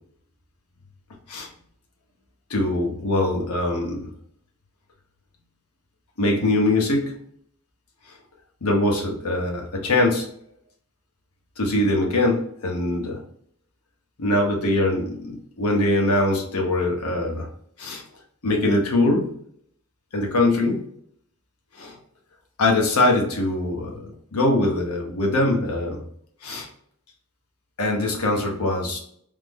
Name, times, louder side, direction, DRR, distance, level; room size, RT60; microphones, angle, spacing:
voice 1, 2.5-4.1 6.2-7.2 8.6-10.3 11.6-13.2 14.2-17.5 17.8-18.0 18.4-19.3 20.1-20.8 21.7-22.0 22.6-26.0 26.4-26.7 27.8-29.0, left 2 dB, 85° left, 0 dB, 0.8 m, -22 dB
3.3 x 2.0 x 3.5 m, 0.66 s
head